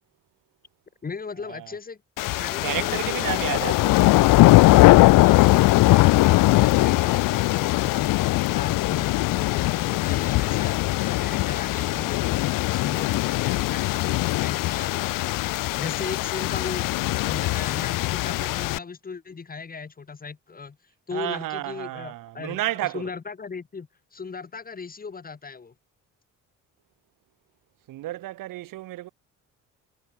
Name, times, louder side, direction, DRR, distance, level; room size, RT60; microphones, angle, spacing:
voice 1, 1.0-2.0 2.4-3.4 5.0-8.1 8.4-10.8 11.0-16.9 17.2-20.8 21.1-25.7, left 5 dB, 25° left, 1.4 m, -37 dB
sound 1, 2.2-18.8, left 19 dB, 85° left, 0.7 m, -20 dB
voice 2, 2.6-4.1 21.1-23.0 27.9-29.1, right 15 dB, 85° right, 2.0 m, -31 dB
cardioid pair, 95°, 32 cm